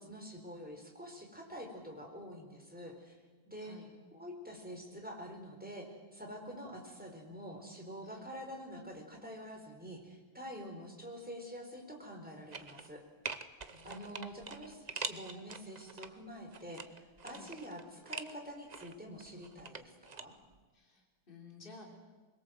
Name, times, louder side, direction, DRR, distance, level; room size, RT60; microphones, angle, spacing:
voice 1, 0.0-3.2 3.5-3.8 4.1-13.0 13.8-20.4, equal, 5° right, 1 dB, 4.4 m, -47 dB
voice 2, 3.6-3.9 8.0-8.3 13.7-14.4 17.3-17.6 20.7-21.9, left 4 dB, 25° left, 1 dB, 3.7 m, -54 dB
sound 1, 12.5-12.9 13.2-16.1 16.5-18.3 18.7-20.2 20.5-20.6, right 5 dB, 45° right, 0.5 m, -44 dB
24.0 x 22.0 x 7.9 m, 1.3 s
omnidirectional pair, 2.1 m